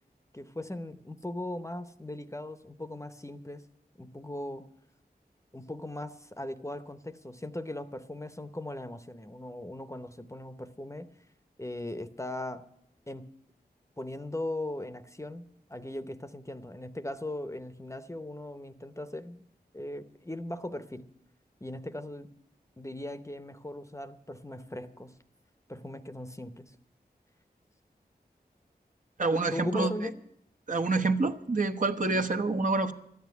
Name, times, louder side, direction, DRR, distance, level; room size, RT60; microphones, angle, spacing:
voice 1, 0.3-3.7 4.0-4.7 5.5-11.1 11.6-12.7 13.1-13.3 14.0-19.4 19.7-21.1 21.6-22.4 22.8-25.1 25.7-26.7 29.5-30.2, left 1 dB, 15° left, 10 dB, 0.9 m, -39 dB
voice 2, 29.2-29.9 30.7-32.9, right 3 dB, 50° right, 4 dB, 1.0 m, -27 dB
13.0 x 9.2 x 9.5 m, 0.72 s
wide cardioid pair, 55°, 17 cm